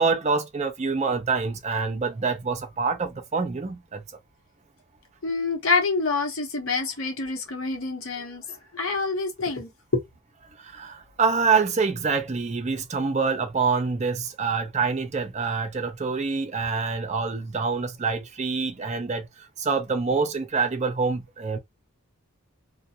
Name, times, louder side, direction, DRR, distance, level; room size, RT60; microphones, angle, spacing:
voice 1, 0.0-4.0 10.6-21.6, right 4 dB, 30° right, 0.5 m, -26 dB
voice 2, 5.2-10.0, left 4 dB, 70° left, 0.9 m, -27 dB
2.4 x 2.2 x 2.8 m
head